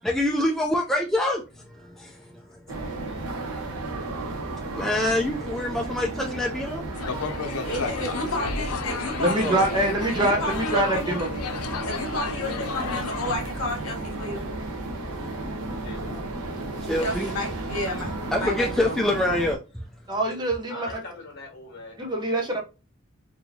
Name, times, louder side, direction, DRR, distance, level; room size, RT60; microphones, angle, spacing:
voice 1, 0.0-2.2 4.7-6.8 9.4-9.6 16.8-17.3 18.3-19.6, left 1 dB, ahead, 0.3 m, -25 dB
voice 2, 2.6-4.5 7.2-8.4 12.4-13.3 15.7-16.3 20.7-22.0, left 2 dB, 50° left, 1.4 m, -44 dB
sound 1, 2.7-19.5, right 2 dB, 90° right, 0.9 m, -33 dB
sound 2, 6.9-13.4, left 5 dB, 90° left, 0.6 m, -33 dB
voice 3, 7.6-11.0 11.8-14.5 17.0-19.0, left 1 dB, 65° left, 1.3 m, -32 dB
voice 4, 9.2-11.3 20.1-20.9 22.0-22.6, right 1 dB, 20° right, 0.7 m, -24 dB
4.3 x 2.7 x 2.7 m
head